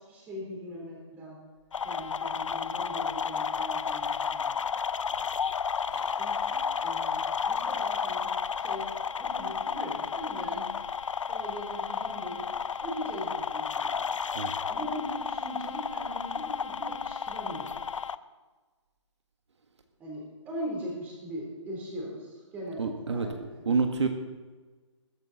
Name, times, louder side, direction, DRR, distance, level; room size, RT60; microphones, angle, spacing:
voice 1, 0.1-1.4 1.8-4.6 5.1-5.2 6.1-8.9 9.2-10.7 11.3-12.5 12.8-14.0 14.7-18.0 20.0-23.6, equal, 10° right, -2 dB, 3.2 m, -40 dB
sound 1, 1.7-18.2, left 6 dB, 80° left, 0.6 m, -32 dB
voice 2, 22.8-23.3 23.6-24.1, right 4 dB, 65° right, 5 dB, 1.6 m, -28 dB
21.0 x 10.0 x 4.0 m, 1.3 s
hypercardioid pair, 170°, 16 cm